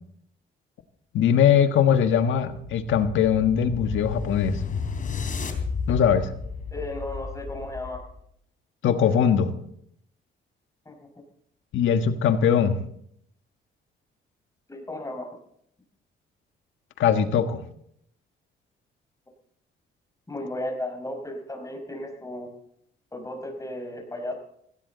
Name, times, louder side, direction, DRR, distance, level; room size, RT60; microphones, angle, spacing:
voice 1, 1.1-4.6 5.9-6.3 8.8-9.5 11.7-12.8 17.0-17.6, left 8 dB, 75° left, 8 dB, 1.5 m, -21 dB
sound 1, 2.4-8.2, left 5 dB, 45° left, 3.4 m, -33 dB
voice 2, 6.7-8.0 10.9-11.0 14.7-15.3 20.3-22.5 23.1-24.3, left 1 dB, 15° left, 3 dB, 5.3 m, -34 dB
17.5 x 16.5 x 4.0 m, 0.70 s
cardioid pair, 90°, 20 cm